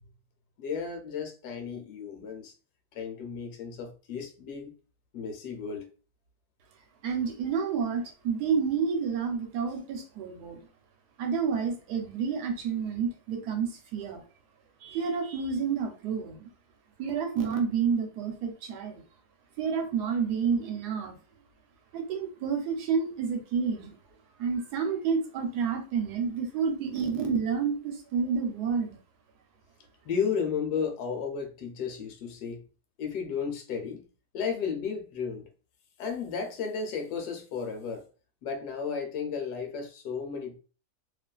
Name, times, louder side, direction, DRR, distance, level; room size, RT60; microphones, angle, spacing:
voice 1, 0.6-2.5 2.9-4.7 5.1-5.9 30.0-32.6 33.0-34.0 34.3-35.5 36.0-38.0 38.4-40.6, left 6 dB, 85° left, 1.2 m, -33 dB
voice 2, 7.0-10.6 11.2-14.2 14.8-16.5 17.0-19.0 19.6-21.1 21.9-23.9 24.4-29.0, right 6 dB, 85° right, 1.2 m, -29 dB
2.8 x 2.5 x 2.2 m
omnidirectional pair, 1.7 m